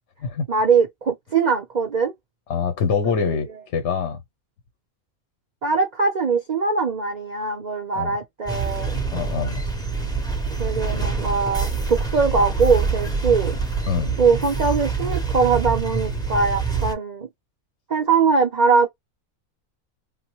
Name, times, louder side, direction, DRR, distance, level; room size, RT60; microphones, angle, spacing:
voice 1, 0.5-2.1 3.0-3.4 5.6-9.0 10.6-13.6 14.2-17.3 17.9-18.9, right 5 dB, 55° right, 0.5 m, -21 dB
voice 2, 2.5-4.2 7.9-8.1 9.1-9.6 13.9-14.2, left 6 dB, 60° left, 0.8 m, -24 dB
sound 1, 8.5-16.9, right 5 dB, 5° left, 0.4 m, -26 dB
3.4 x 2.1 x 2.9 m
omnidirectional pair, 1.5 m